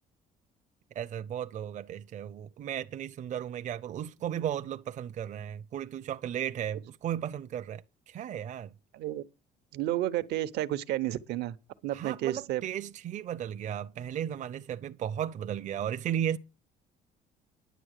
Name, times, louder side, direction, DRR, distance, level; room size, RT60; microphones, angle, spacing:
voice 1, 0.9-8.7 11.9-16.4, right 10 dB, 45° right, 0.6 m, -35 dB
voice 2, 9.7-11.6 11.8-12.6, right 14 dB, 80° right, 0.8 m, -31 dB
10.0 x 8.0 x 6.5 m
cardioid pair, 110°, 17 cm